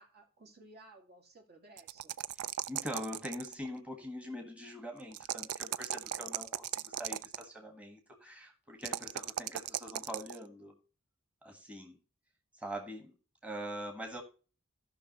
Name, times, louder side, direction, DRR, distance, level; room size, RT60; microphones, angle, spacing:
voice 1, 0.0-2.2, right 2 dB, 50° right, 2.2 m, -57 dB
sound 1, 1.8-3.7 5.1-7.4 8.8-10.4, right 12 dB, 75° right, 0.4 m, -37 dB
voice 2, 2.3-10.8 11.4-12.0 12.5-13.1 13.4-14.2, equal, 5° right, 1.6 m, -43 dB
16.0 x 5.9 x 3.0 m
head